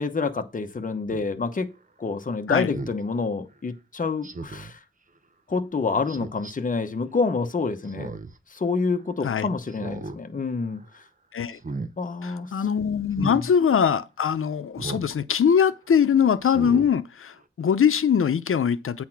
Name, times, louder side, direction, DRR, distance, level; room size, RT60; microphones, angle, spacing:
voice 1, 0.0-1.7 2.0-4.8 5.5-8.1 8.5-11.0 12.0-12.5 13.2-13.4, left 4 dB, 40° left, 1.0 m, -28 dB
Speech synthesizer, 1.1-1.3 2.7-3.0 4.2-4.7 6.1-6.5 7.8-8.4 8.8-8.9 9.7-10.2 10.6-10.9 11.5-11.9 13.1-13.4 14.8-15.1 15.6-15.7 16.4-16.9 17.4-17.5, right 3 dB, 40° right, 0.8 m, -36 dB
voice 2, 12.2-19.0, left 7 dB, 90° left, 0.7 m, -22 dB
8.5 x 4.3 x 5.9 m
wide cardioid pair, 115°, 21 cm